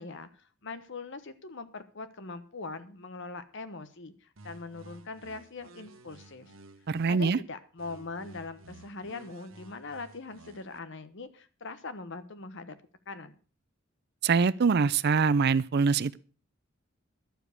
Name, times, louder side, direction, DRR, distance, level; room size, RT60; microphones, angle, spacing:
voice 1, 0.0-6.5 7.1-12.7 13.1-13.3, left 3 dB, 60° left, 1.1 m, -42 dB
sound 1, 4.4-7.4 7.8-10.8, right 2 dB, 70° right, 1.3 m, -53 dB
voice 2, 6.9-7.4 14.2-16.2, right 5 dB, 55° right, 0.5 m, -24 dB
12.0 x 7.2 x 6.5 m
head